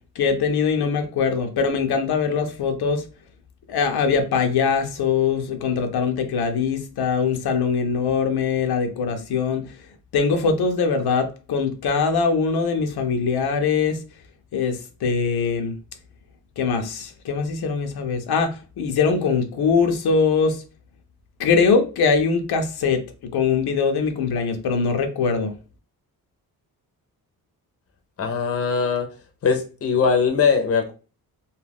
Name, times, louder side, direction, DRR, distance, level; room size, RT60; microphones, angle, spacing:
voice 1, 0.2-3.0 3.7-9.8 10.1-14.0 14.5-15.8 16.6-20.6 21.4-25.5, left 5 dB, 80° left, 0.6 m, -22 dB
voice 2, 28.2-29.1 29.4-30.9, left 5 dB, 40° left, 0.6 m, -21 dB
2.3 x 2.2 x 3.4 m
wide cardioid pair, 135°, 38 cm